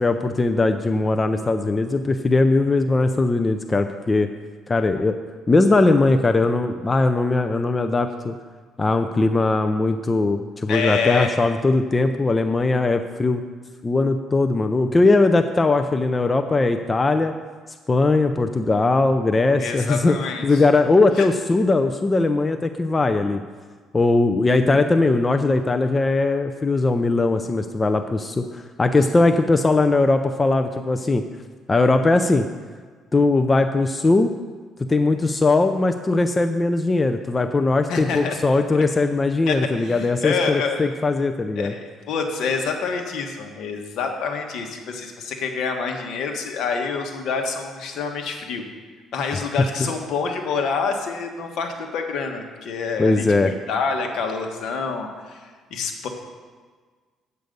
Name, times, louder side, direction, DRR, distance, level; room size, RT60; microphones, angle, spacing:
voice 1, 0.0-4.3 4.7-5.2 5.5-8.3 8.8-13.4 13.8-17.3 17.9-20.1 20.4-23.4 23.9-31.2 31.7-32.5 33.1-34.3 34.9-41.7 53.0-53.5, left 3 dB, 20° left, 7 dB, 0.4 m, -20 dB
voice 2, 10.7-11.3 19.6-20.6 21.2-21.3 37.9-38.4 39.5-40.8 41.6-48.7 49.1-56.1, left 5 dB, 70° left, 4 dB, 1.3 m, -27 dB
8.1 x 7.9 x 5.2 m, 1.5 s
cardioid pair, 110°, 0 cm